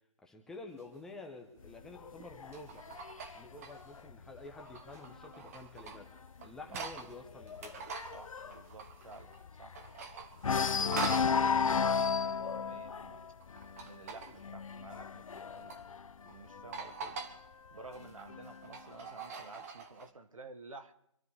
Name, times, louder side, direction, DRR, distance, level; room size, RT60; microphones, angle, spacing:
voice 1, 0.2-2.9 3.3-7.9, left 2 dB, 5° left, 2 dB, 1.0 m, -50 dB
sound 1, 0.8-1.0 2.2-4.0 4.4-7.2 7.5-9.4 9.7-11.4 13.4-14.4 15.3-15.8 16.3-16.4 16.7-17.4 17.8-20.1, right 5 dB, 30° right, 1.4 m, -44 dB
sound 2, 1.6-5.2 5.7-6.0 6.2-6.3 6.7-10.0 10.4-16.9 17.8-18.8, left 6 dB, 85° left, 0.5 m, -34 dB
voice 2, 8.1-9.8 10.5-13.3 13.8-15.8 16.2-17.2 17.7-20.9, right 3 dB, 80° right, 9 dB, 1.8 m, -52 dB
25.5 x 13.5 x 3.4 m, 0.75 s
hypercardioid pair, 160°, 17 cm